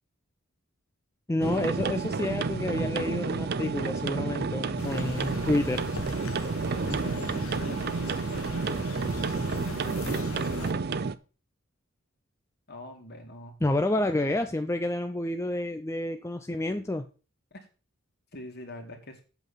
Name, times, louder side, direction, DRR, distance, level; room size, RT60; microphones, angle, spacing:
voice 1, 1.3-5.8 13.6-17.1, left 1 dB, 15° left, 7 dB, 0.5 m, -29 dB
sound 1, 1.4-11.2, right 4 dB, 45° right, 0.5 m, -30 dB
sound 2, 4.8-10.7, left 3 dB, 75° left, 1.0 m, -40 dB
voice 2, 6.7-8.8 9.5-10.8 12.7-13.6 17.5-17.7 18.3-19.2, left 1 dB, 50° left, 4 dB, 2.2 m, -44 dB
8.2 x 7.1 x 5.7 m, 0.35 s
head